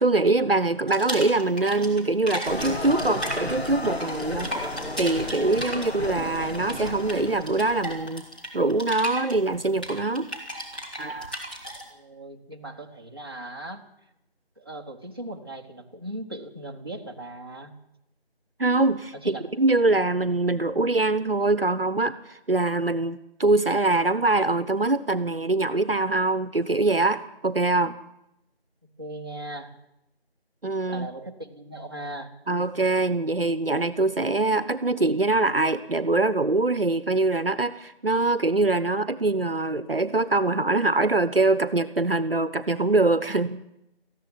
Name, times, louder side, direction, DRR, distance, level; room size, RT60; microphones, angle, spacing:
voice 1, 0.0-4.5 5.0-8.3 8.5-10.3 11.0-11.4 18.6-28.0 30.6-31.1 32.5-43.6, right 2 dB, 65° right, 14 dB, 1.1 m, -23 dB
sound 1, 0.9-2.0 2.3-11.8, equal, 10° left, 1.8 m, -35 dB
sound 2, 2.4-8.1, left 1 dB, 80° left, 1.7 m, -34 dB
voice 2, 11.9-13.9 14.6-17.7 19.2-19.6 29.0-29.7 30.9-32.3, right 1 dB, 25° right, 0 dB, 1.5 m, -38 dB
19.0 x 14.5 x 9.5 m, 0.87 s
figure-of-eight pair, 170°, 31 cm